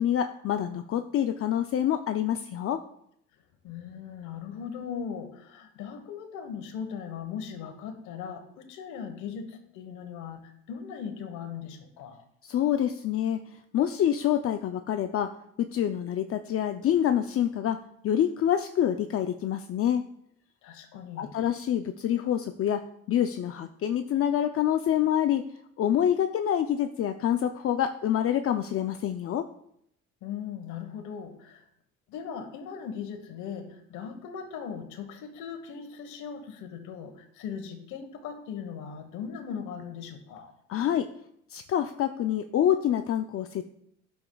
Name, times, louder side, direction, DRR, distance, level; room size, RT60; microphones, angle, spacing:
voice 1, 0.0-2.8 12.4-13.4 13.7-15.3 15.6-17.8 18.0-20.1 21.2-22.8 23.1-25.4 25.8-29.5 40.7-41.1 41.5-43.6, left 10 dB, 50° left, 7 dB, 0.5 m, -26 dB
voice 2, 3.6-12.2 20.6-21.3 30.2-31.7 32.1-40.5, left 7 dB, 85° left, 7 dB, 1.3 m, -39 dB
10.5 x 7.0 x 2.3 m, 0.74 s
supercardioid pair, 80°, 29 cm